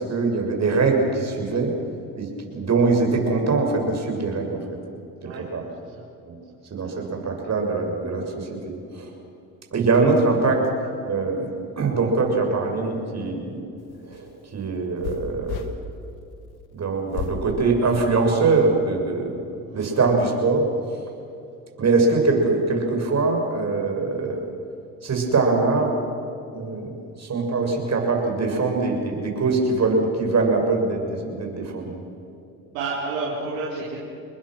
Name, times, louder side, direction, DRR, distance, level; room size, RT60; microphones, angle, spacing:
voice 1, 0.0-1.7 2.2-4.6 5.2-5.6 6.3-6.4 6.7-9.1 9.7-10.7 11.0-13.6 14.0-14.3 14.5-15.6 16.7-19.4 19.7-21.0 21.8-24.5 25.0-26.0 26.5-26.9 27.2-32.0, right 3 dB, 40° right, 2 dB, 6.8 m, -23 dB
voice 2, 6.7-7.1 19.6-20.0 32.7-34.0, right 3 dB, 85° right, -6 dB, 4.7 m, -31 dB
sound 1, 13.8-15.7 17.1-17.4 18.0-18.7, left 10 dB, 65° left, 2.4 m, -34 dB
29.5 x 21.5 x 6.2 m, 2.6 s
hypercardioid pair, 70°, 41 cm